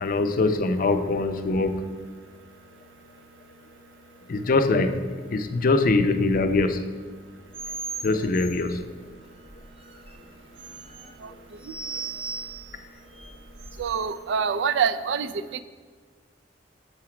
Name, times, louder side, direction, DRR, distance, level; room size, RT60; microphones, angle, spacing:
voice 1, 0.0-2.0 4.3-6.9 8.0-8.7, left 3 dB, 50° left, 8 dB, 0.5 m, -23 dB
sound 1, 7.5-14.2, right 4 dB, 30° right, 0.6 m, -39 dB
voice 2, 13.8-15.6, right 6 dB, 70° right, 12 dB, 0.3 m, -26 dB
6.6 x 5.8 x 4.9 m, 1.5 s
head